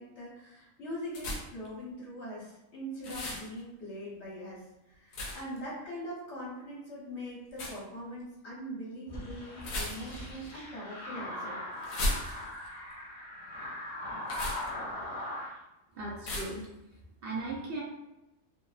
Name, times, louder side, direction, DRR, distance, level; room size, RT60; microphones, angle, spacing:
voice 1, 0.0-11.6, equal, 55° left, -6 dB, 1.2 m, -42 dB
sound 1, 1.1-1.7 3.0-3.5 5.1-5.6 7.5-7.8 9.6-10.3 11.8-12.7 14.2-14.7 16.2-16.7, left 1 dB, 75° left, 1.0 m, -35 dB
sound 2, 9.1-15.5, left 1 dB, 35° left, 0.5 m, -40 dB
voice 2, 15.9-16.6 17.2-17.8, right 3 dB, 70° right, -4 dB, 0.5 m, -37 dB
2.6 x 2.0 x 2.3 m, 0.94 s
omnidirectional pair, 1.5 m